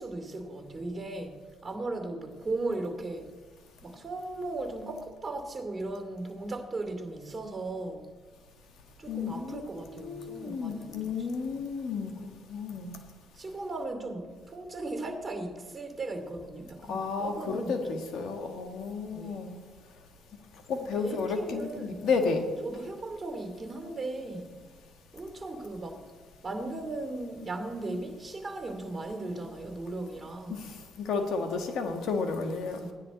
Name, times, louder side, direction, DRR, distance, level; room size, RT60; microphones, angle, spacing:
voice 1, 0.0-1.4 1.6-3.3 3.8-8.1 9.0-11.3 13.4-18.0 19.1-19.4 20.7-22.1 22.6-24.5 25.1-26.0 26.4-30.7 32.7-32.9, right 2 dB, 30° right, 5 dB, 2.5 m, -37 dB
voice 2, 9.1-13.0 16.9-19.6 20.7-22.5 30.5-32.8, left 4 dB, 70° left, 5 dB, 1.7 m, -32 dB
16.5 x 10.0 x 4.2 m, 1.5 s
supercardioid pair, 65°, 0 cm